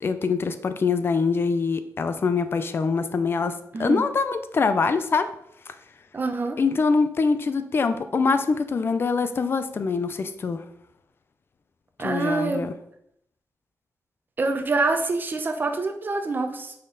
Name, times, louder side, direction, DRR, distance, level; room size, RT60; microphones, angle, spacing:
voice 1, 0.0-5.3 6.6-10.7 12.0-12.7, left 4 dB, 40° left, 10 dB, 0.5 m, -24 dB
voice 2, 6.1-6.6 12.0-12.7 14.4-16.7, right 3 dB, 30° right, 6 dB, 0.8 m, -26 dB
9.0 x 4.3 x 3.9 m, 0.74 s
wide cardioid pair, 170°, 6 cm